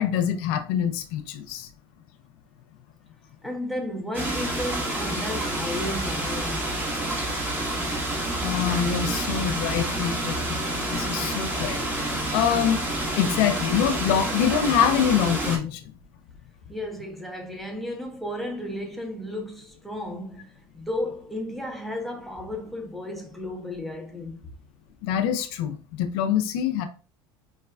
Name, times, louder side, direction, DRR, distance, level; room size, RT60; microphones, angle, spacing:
voice 1, 0.0-1.7 8.4-12.8 13.1-15.8 25.0-26.9, left 8 dB, 75° left, 0.4 m, -25 dB
voice 2, 3.4-6.6 16.7-24.4, left 1 dB, ahead, 0.8 m, -33 dB
sound 1, 4.1-15.6, right 1 dB, 15° right, 1.2 m, -28 dB
4.7 x 2.2 x 2.3 m
supercardioid pair, 95°, 13 cm